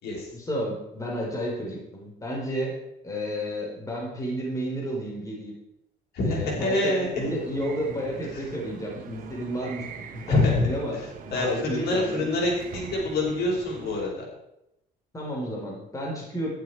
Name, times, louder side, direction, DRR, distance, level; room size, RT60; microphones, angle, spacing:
voice 1, 0.3-2.8 3.0-5.5 6.2-9.9 10.1-12.2 15.1-16.5, equal, 20° left, -2 dB, 4.2 m, -32 dB
voice 2, 6.1-7.3 8.3-8.4 10.3-10.7 11.0-14.2, left 2 dB, 70° left, -2 dB, 5.6 m, -26 dB
sound 1, 7.2-14.0, right 6 dB, 55° right, 1.4 m, -43 dB
11.5 x 11.5 x 4.7 m, 0.85 s
cardioid pair, 110°, 17 cm